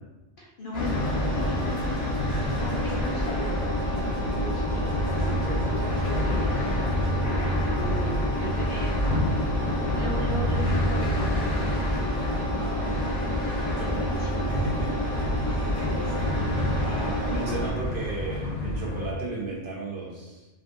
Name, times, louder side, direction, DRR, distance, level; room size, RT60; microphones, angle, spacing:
voice 1, 0.4-2.1 2.4-5.2 5.7-9.5 9.9-12.6 14.2-14.3 15.4-16.2, left 1 dB, 50° left, -5 dB, 0.8 m, -38 dB
sound 1, 0.7-19.1, left 1 dB, 75° left, 1.2 m, -29 dB
Engine, 0.7-17.7, equal, 40° right, 1.1 m, -30 dB
voice 2, 2.3-2.6 5.3-6.8 12.2-12.3 12.6-13.1 13.8-14.9 15.2-15.8 16.0-20.5, right 2 dB, 55° right, -4 dB, 0.7 m, -35 dB
3.5 x 2.4 x 2.5 m, 1.1 s
omnidirectional pair, 1.3 m